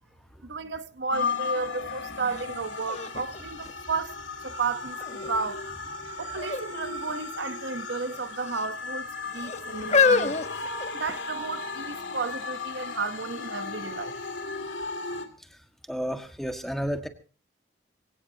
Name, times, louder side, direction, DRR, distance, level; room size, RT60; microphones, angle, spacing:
voice 1, 0.4-5.6 6.2-10.4 10.9-14.2, right 4 dB, 70° right, 0.9 m, -33 dB
sound 1, 1.1-15.2, left 4 dB, 90° left, 2.7 m, -36 dB
sound 2, 2.3-2.4 2.9-4.4 5.0-5.5 6.3-6.7 7.0-7.1 8.0-8.7 9.4-11.4 12.2-12.3, left 4 dB, 35° left, 1.1 m, -27 dB
voice 2, 15.9-17.1, equal, ahead, 1.6 m, -31 dB
23.5 x 17.0 x 2.8 m
head